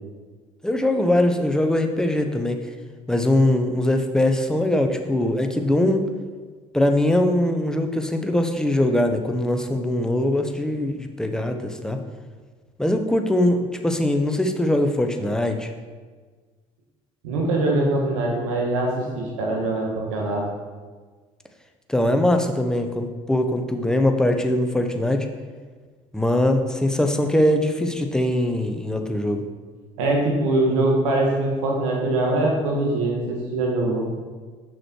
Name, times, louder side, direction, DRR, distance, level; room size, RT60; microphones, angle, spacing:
voice 1, 0.6-2.6 3.1-6.0 6.7-12.0 12.8-15.7 21.9-25.3 26.1-29.4, left 1 dB, 5° left, 5 dB, 0.9 m, -21 dB
voice 2, 17.2-20.5 30.0-34.1, right 2 dB, 85° right, -1 dB, 1.7 m, -23 dB
6.3 x 6.3 x 4.6 m, 1.5 s
hypercardioid pair, 65°, 16 cm